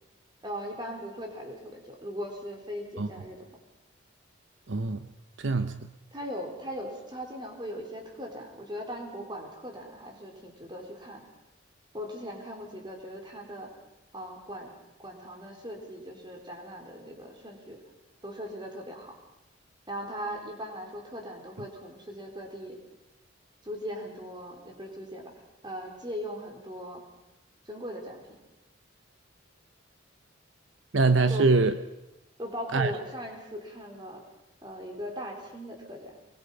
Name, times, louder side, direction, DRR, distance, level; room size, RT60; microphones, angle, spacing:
voice 1, 0.4-3.5 6.1-11.3 11.9-13.7 14.1-14.7 15.0-17.8 18.2-19.1 19.9-22.8 23.6-25.3 25.6-27.0 27.7-28.2 31.3-31.5 32.4-34.2 34.6-36.1, equal, 20° right, 1 dB, 4.2 m, -39 dB
voice 2, 4.7-5.1 5.4-5.9 30.9-31.7 32.7-32.9, right 3 dB, 70° right, 10 dB, 0.9 m, -24 dB
23.5 x 21.5 x 5.6 m, 0.95 s
head